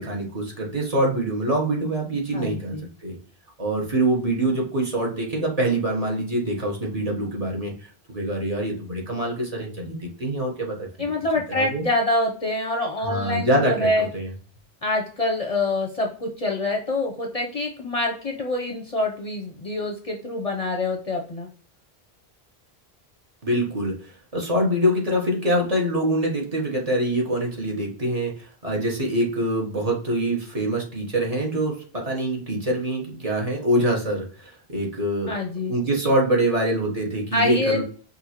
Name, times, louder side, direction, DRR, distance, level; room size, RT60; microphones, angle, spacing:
voice 1, 0.0-2.7 3.0-3.2 3.6-10.9 11.5-11.8 13.0-14.3 23.4-35.4 35.7-37.8, right 1 dB, 40° right, -1 dB, 1.2 m, -25 dB
voice 2, 2.3-2.8 11.0-14.1 14.8-21.5 35.3-35.7 37.3-37.8, left 2 dB, 40° left, 1 dB, 0.7 m, -26 dB
5.4 x 2.7 x 2.9 m, 0.43 s
omnidirectional pair, 1.0 m